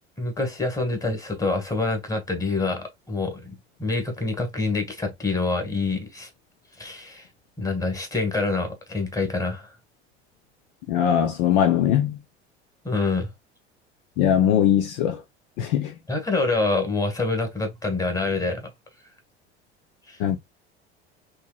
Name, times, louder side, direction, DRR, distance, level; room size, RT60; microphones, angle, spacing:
voice 1, 0.2-6.3 6.8-7.3 7.6-9.7 12.8-13.3 16.1-18.6 20.1-20.2, left 3 dB, 10° left, 1.6 m, -26 dB
voice 2, 10.9-12.2 14.2-15.2 15.6-15.9 20.2-20.4, left 9 dB, 50° left, 0.6 m, -21 dB
4.5 x 3.1 x 2.3 m
figure-of-eight pair, 70°, 32 cm